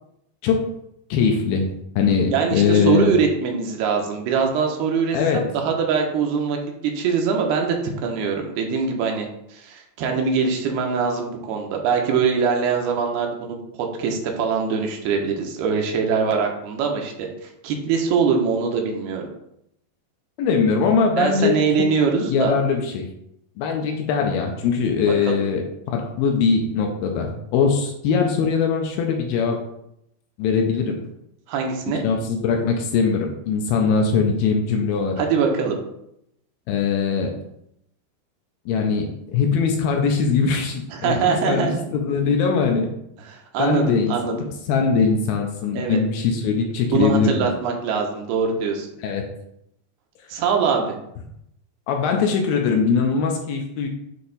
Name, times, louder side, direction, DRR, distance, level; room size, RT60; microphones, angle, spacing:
voice 1, 1.1-3.2 5.1-5.5 20.4-21.6 22.3-23.1 23.6-25.6 25.9-29.6 30.4-31.1 31.9-35.2 36.7-37.4 38.7-42.9 43.6-47.5 49.0-49.3 51.9-53.9, left 5 dB, 80° left, 3 dB, 2.3 m, -21 dB
voice 2, 2.3-6.6 7.0-7.8 8.0-13.6 14.0-19.3 21.2-22.5 25.3-25.4 31.5-32.0 35.2-35.8 40.9-41.8 43.3-44.4 45.7-46.0 46.9-48.9 50.3-51.0, right 5 dB, 80° right, 2 dB, 2.7 m, -23 dB
8.5 x 2.9 x 4.0 m, 0.78 s
omnidirectional pair, 4.7 m